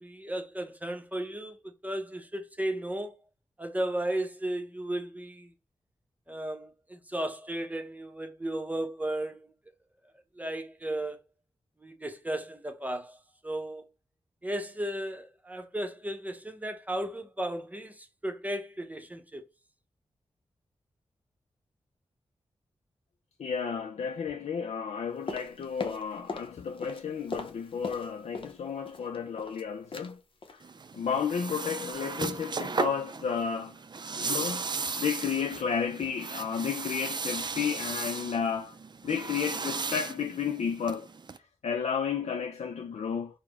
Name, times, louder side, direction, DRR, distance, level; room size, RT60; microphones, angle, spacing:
voice 1, 0.0-3.1 3.6-5.5 6.3-9.5 10.4-11.2 11.8-13.2 13.4-13.9 14.4-19.4, right 1 dB, 15° right, 0.8 m, -35 dB
voice 2, 23.4-30.2 30.5-30.6 31.0-33.7 34.2-38.8 39.0-41.1 41.6-43.4, left 6 dB, 75° left, 0.4 m, -32 dB
sound 1, 25.3-26.5 26.8-28.6 28.9-29.6 29.9-30.1 30.4-30.6 30.9-31.2 31.5-31.6, left 3 dB, 50° left, 0.8 m, -39 dB
sound 2, 30.6-41.4, right 4 dB, 40° right, 0.4 m, -36 dB
4.8 x 2.1 x 3.5 m
cardioid pair, 45°, 11 cm